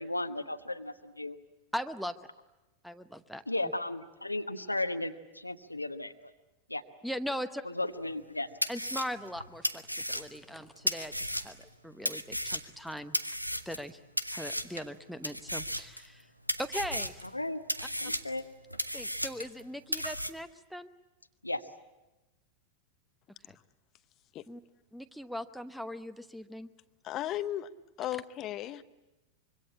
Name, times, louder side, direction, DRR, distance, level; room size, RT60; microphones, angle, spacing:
voice 1, 0.0-1.4 3.5-6.3 6.7-6.8 7.6-8.5 17.3-17.6 18.0-18.4 21.4-21.6, left 2 dB, 85° left, 8 dB, 1.1 m, -35 dB
voice 2, 1.7-2.2 2.8-3.4 7.0-7.6 8.7-9.8 10.1-13.2 13.7-14.0 14.3-16.3 16.6-17.2 18.9-20.9 24.5-24.6 24.9-26.7, equal, ahead, 13 dB, 1.0 m, -39 dB
sound 1, 8.1-8.2 8.6-11.7 12.1-13.9 14.2-14.9 15.2-16.2 16.5-17.3 17.7-19.6 19.9-20.3, equal, 90° right, 1.0 m, -34 dB
voice 3, 27.0-27.7 28.0-28.8, left 13 dB, 35° left, 13 dB, 0.9 m, -35 dB
25.5 x 23.5 x 8.6 m, 1.0 s
figure-of-eight pair, 90°, 0 cm